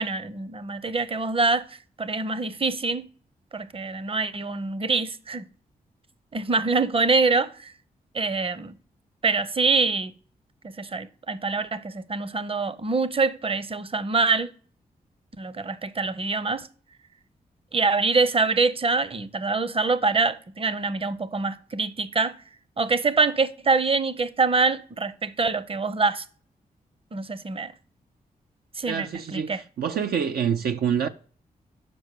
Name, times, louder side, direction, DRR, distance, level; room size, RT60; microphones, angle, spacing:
voice 1, 0.0-3.1 3.5-5.5 6.3-7.7 8.1-8.7 9.2-10.1 10.6-14.5 15.4-16.7 17.7-22.4 22.8-26.2 27.1-27.7 28.8-29.6, right 3 dB, 35° right, 0.7 m, -25 dB
voice 2, 28.9-31.1, right 8 dB, 75° right, 0.5 m, -26 dB
6.2 x 5.1 x 6.7 m
cardioid pair, 55°, 16 cm